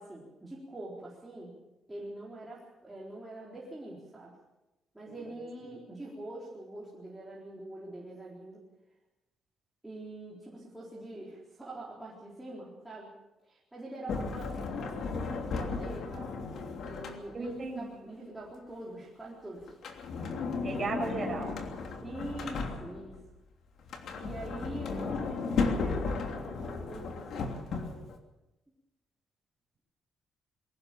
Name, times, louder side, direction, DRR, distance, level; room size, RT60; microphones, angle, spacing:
voice 1, 0.0-1.5 1.9-4.4 4.9-8.6 9.8-13.1 13.4-16.4 16.8-19.7 22.0-23.2 24.2-28.0, right 1 dB, 10° right, -5 dB, 4.1 m, -44 dB
Sliding door, 14.1-17.6 19.7-23.2 23.8-28.2, left 4 dB, 60° left, 3.0 m, -35 dB
voice 2, 17.3-18.0 20.6-21.6 24.0-24.3, right 3 dB, 30° right, 2 dB, 6.2 m, -36 dB
22.0 x 18.5 x 7.0 m, 0.98 s
cardioid pair, 165°, 0 cm